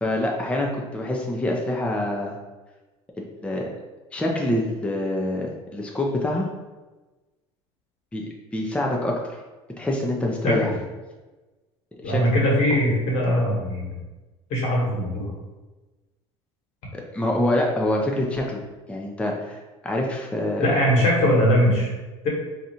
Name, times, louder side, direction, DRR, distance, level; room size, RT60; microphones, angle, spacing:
voice 1, 0.0-2.4 3.2-3.7 4.1-6.5 8.1-8.3 8.5-9.4 9.8-10.7 12.0-12.2 16.9-18.6 18.9-20.7, left 1 dB, 10° left, -1 dB, 0.5 m, -26 dB
voice 2, 10.4-10.7 12.0-14.0 14.5-15.3 20.6-21.9 22.2-22.3, equal, 65° left, -3 dB, 1.4 m, -21 dB
2.7 x 2.4 x 4.2 m, 1.2 s
supercardioid pair, 95°, 13 cm